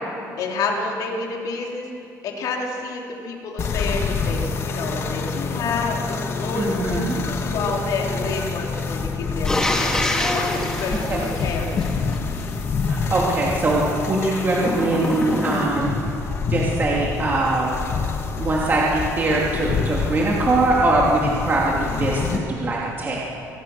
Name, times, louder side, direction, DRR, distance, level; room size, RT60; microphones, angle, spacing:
voice 1, 0.4-1.9 2.2-9.7 10.1-12.3, left 3 dB, 65° left, 0 dB, 3.6 m, -29 dB
sound 1, 3.6-22.4, left 4 dB, 40° left, 1.5 m, -27 dB
voice 2, 6.5-7.2 11.1-11.2 12.9-15.9 16.5-17.7 18.4-23.3, right 2 dB, 30° right, -4 dB, 2.7 m, -22 dB
sound 2, 9.4-12.2 14.6-16.0, left 1 dB, 10° left, 1.9 m, -26 dB
26.0 x 17.0 x 6.7 m, 2.6 s
cardioid pair, 150°, 7 cm